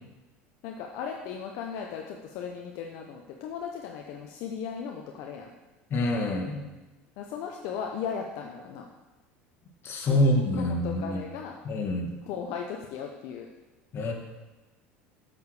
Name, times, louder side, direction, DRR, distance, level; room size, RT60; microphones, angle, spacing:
voice 1, 0.6-5.5 7.2-8.9 10.0-11.6 12.2-13.5, left 7 dB, 60° left, 2 dB, 0.9 m, -37 dB
voice 2, 5.9-6.7 9.8-11.2 11.7-12.1 13.9-14.1, left 1 dB, 40° left, 0 dB, 2.0 m, -26 dB
8.1 x 7.1 x 4.9 m, 1.1 s
hypercardioid pair, 80°, 6 cm